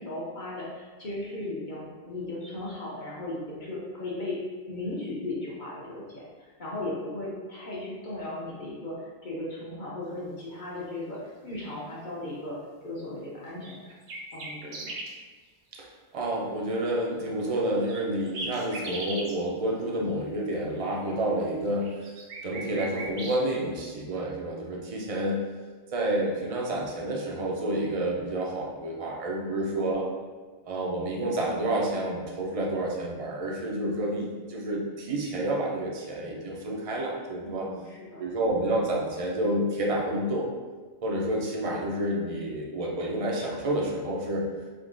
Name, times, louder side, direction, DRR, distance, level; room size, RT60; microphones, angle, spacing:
voice 1, 0.0-4.4 4.7-9.0 9.2-12.6 12.8-13.8 14.3-14.9 29.4-29.9 37.4-38.2, left 2 dB, 50° left, -6 dB, 0.9 m, -36 dB
sound 1, 13.6-15.1 17.9-19.4 21.7-23.4, right 2 dB, 70° right, 0.8 m, -38 dB
voice 2, 16.1-21.9 22.4-25.4 25.9-30.1 30.6-37.7 38.2-40.5 41.0-44.5, right 1 dB, 45° right, -2 dB, 0.5 m, -29 dB
3.7 x 2.8 x 2.5 m, 1.4 s
omnidirectional pair, 1.1 m